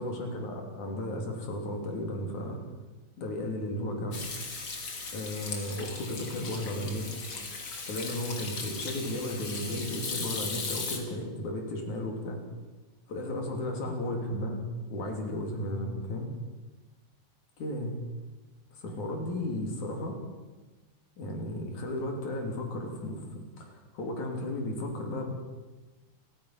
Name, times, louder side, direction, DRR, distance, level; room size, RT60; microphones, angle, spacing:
voice 1, 0.0-2.6 3.2-4.2 5.1-7.1 7.9-12.4 13.1-16.3 17.6-17.9 18.8-20.2 21.2-25.3, left 1 dB, 60° left, 2 dB, 4.5 m, -34 dB
Hands / Sink (filling or washing), 4.1-11.0, left 4 dB, 40° left, 3.0 m, -37 dB
29.5 x 15.0 x 5.9 m, 1.2 s
omnidirectional pair, 3.8 m